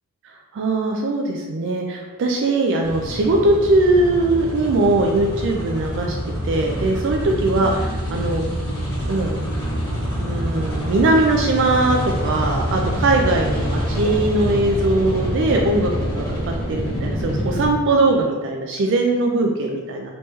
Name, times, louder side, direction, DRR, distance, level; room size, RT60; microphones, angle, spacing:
voice 1, 0.2-6.2 6.4-8.4 9.1-9.4 10.1-20.1, right 2 dB, 55° right, 1 dB, 0.3 m, -20 dB
sound 1, 2.8-17.7, equal, 15° left, 1.1 m, -26 dB
3.0 x 3.0 x 3.3 m, 1.3 s
head